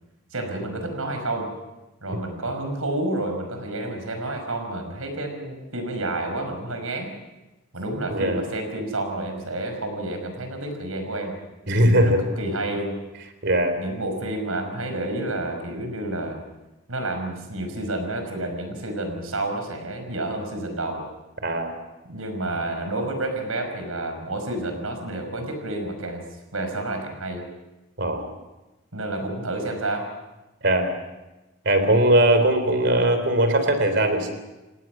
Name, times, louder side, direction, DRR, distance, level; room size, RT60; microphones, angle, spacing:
voice 1, 0.3-1.5 2.0-7.1 7.7-11.4 11.9-13.0 13.8-16.4 16.9-21.1 22.1-26.2 26.5-27.4 28.9-30.1 31.7-32.0, right 2 dB, 85° right, 5 dB, 5.4 m, -30 dB
voice 2, 8.1-8.4 11.7-12.2 13.4-13.7 21.4-21.7 28.0-28.2 30.6-30.9 31.6-34.3, right 1 dB, 55° right, 8 dB, 3.5 m, -20 dB
29.0 x 18.5 x 6.1 m, 1.1 s
head